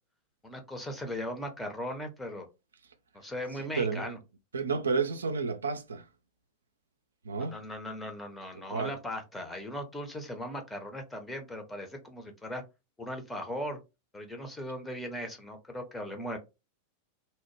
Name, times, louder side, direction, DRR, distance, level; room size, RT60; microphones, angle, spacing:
voice 1, 0.4-2.5 3.1-4.2 7.4-12.6 13.0-13.8 14.1-16.4, equal, 10° left, 0.7 m, -38 dB
voice 2, 3.8-4.1 4.5-6.1 7.2-7.5 8.7-9.0, right 5 dB, 70° right, 0.3 m, -31 dB
2.7 x 2.1 x 3.1 m
figure-of-eight pair, 90°, 0 cm